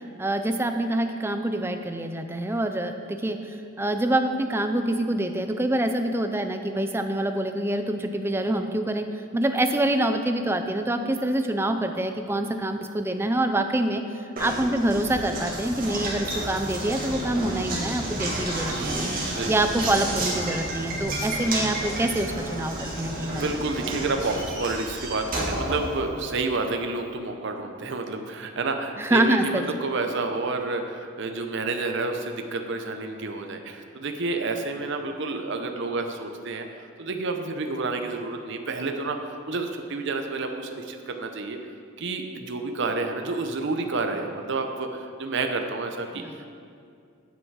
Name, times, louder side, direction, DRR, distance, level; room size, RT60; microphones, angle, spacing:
voice 1, 0.2-14.0 14.4-19.1 19.5-23.6 29.0-29.7 46.1-46.5, right 1 dB, 10° right, 7 dB, 0.5 m, -26 dB
Knock, 14.4-26.5, right 1 dB, 45° right, 2.3 m, -31 dB
sound 1, 14.8-22.6 24.2-25.3, left 1 dB, 80° left, 1.1 m, -46 dB
voice 2, 18.7-19.5 23.3-36.7 37.0-39.2 39.5-41.6 42.0-46.2, right 3 dB, 60° right, 5 dB, 0.7 m, -29 dB
9.3 x 8.0 x 4.7 m, 2.3 s
head